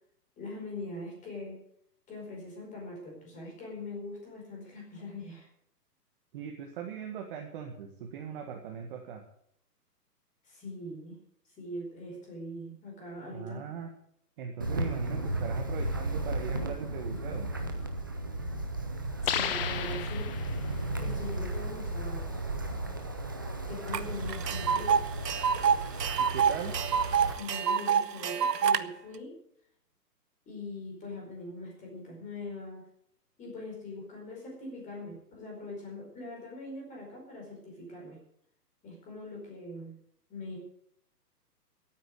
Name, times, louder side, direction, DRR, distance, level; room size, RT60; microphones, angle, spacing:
voice 1, 0.4-1.6 2.1-5.5 10.4-11.2 11.6-13.6 19.2-20.3 21.0-22.4 23.7-25.1 27.3-29.4 30.5-32.8 33.4-38.2 38.8-39.9 40.3-40.6, left 2 dB, 15° left, 0 dB, 4.8 m, -42 dB
voice 2, 6.3-9.2 13.3-13.9 14.4-17.5 26.2-26.7, right 7 dB, 35° right, 2 dB, 1.7 m, -39 dB
Wind, 14.6-27.3, right 2 dB, 15° right, 0.5 m, -34 dB
sound 1, 19.2-20.8, left 9 dB, 35° left, 1.1 m, -33 dB
Tick, 23.9-24.0 24.3-28.8, right 7 dB, 75° right, 1.2 m, -27 dB
13.5 x 9.3 x 8.1 m, 0.70 s
hypercardioid pair, 155°, 49 cm